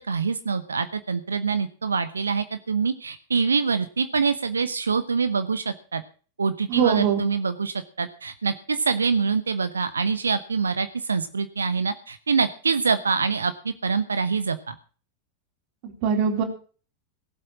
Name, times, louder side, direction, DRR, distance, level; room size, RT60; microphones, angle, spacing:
voice 1, 0.1-6.0 6.4-14.7, right 5 dB, 75° right, 12 dB, 0.9 m, -25 dB
voice 2, 6.7-7.2 15.8-16.4, right 7 dB, 45° right, 3 dB, 3.9 m, -22 dB
18.0 x 7.8 x 5.9 m, 0.39 s
figure-of-eight pair, 90°, 0 cm